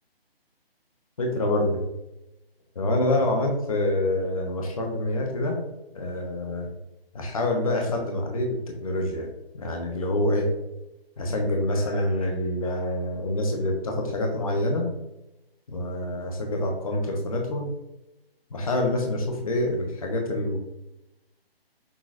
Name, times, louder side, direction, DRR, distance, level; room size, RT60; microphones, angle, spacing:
voice 1, 1.2-1.8 2.7-5.6 5.9-6.7 7.1-9.3 9.5-10.5 11.2-14.9 15.7-17.7 18.5-20.6, left 1 dB, 35° left, 1 dB, 0.8 m, -26 dB
6.2 x 2.9 x 2.5 m, 0.92 s
hypercardioid pair, 170°, 31 cm